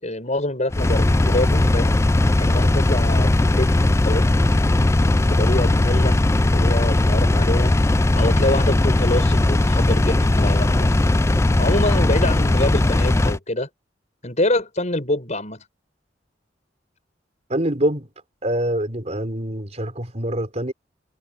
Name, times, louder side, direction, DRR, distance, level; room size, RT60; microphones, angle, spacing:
voice 1, 0.0-2.0 2.4-4.3 5.1-6.2 6.4-7.7 8.1-11.0 11.6-13.7 14.2-15.6, left 1 dB, 40° left, 7.1 m, -26 dB
Engine, 0.7-13.4, left 2 dB, 15° left, 0.4 m, -18 dB
voice 2, 17.5-18.1 18.4-20.7, right 1 dB, 35° right, 4.4 m, -25 dB
head